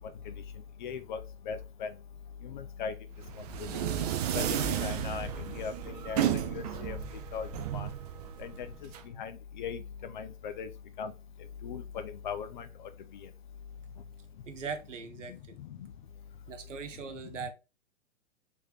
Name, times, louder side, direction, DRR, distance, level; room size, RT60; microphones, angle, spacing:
voice 1, 0.8-1.2 1.5-1.9 2.4-2.9 3.6-3.8 4.3-7.0 7.3-7.5 7.7-7.9 8.4-8.9 9.2-9.3 9.6-9.8 10.1-10.7 11.0-11.1 11.6-12.7 15.3-15.4, left 6 dB, 40° left, 0.5 m, -38 dB
sound 1, 3.2-9.0, right 9 dB, 30° right, 0.5 m, -33 dB
voice 2, 14.5-15.6 16.5-17.5, right 6 dB, 70° right, 1.1 m, -40 dB
4.7 x 3.5 x 3.0 m
figure-of-eight pair, 120°, 39 cm